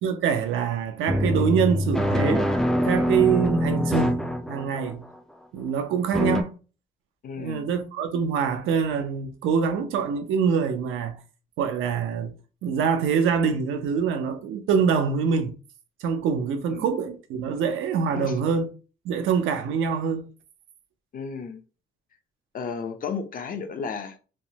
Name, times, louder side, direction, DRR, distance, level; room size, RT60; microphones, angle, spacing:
voice 1, 0.0-2.5 2.8-5.0 5.5-6.6 7.4-11.2 11.6-12.3 12.6-15.5 16.0-18.7 19.0-20.3, right 6 dB, 85° right, 0.5 m, -25 dB
sound 1, 1.1-5.0 6.1-6.4, equal, 5° left, 0.3 m, -24 dB
voice 2, 7.2-7.7 16.7-16.9 18.1-18.3 21.1-21.6 22.5-24.2, left 5 dB, 45° left, 0.6 m, -33 dB
3.2 x 2.0 x 2.7 m
cardioid pair, 90°, 20 cm